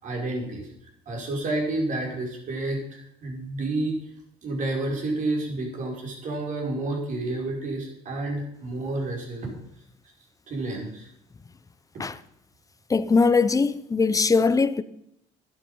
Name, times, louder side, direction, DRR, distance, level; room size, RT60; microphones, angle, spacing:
voice 1, 0.0-0.7 1.1-4.0 4.4-9.6 10.5-11.1, right 2 dB, 55° right, 5.6 m, -30 dB
voice 2, 12.9-14.8, left 4 dB, 20° left, 0.9 m, -21 dB
12.5 x 11.5 x 5.7 m
supercardioid pair, 85°, 15 cm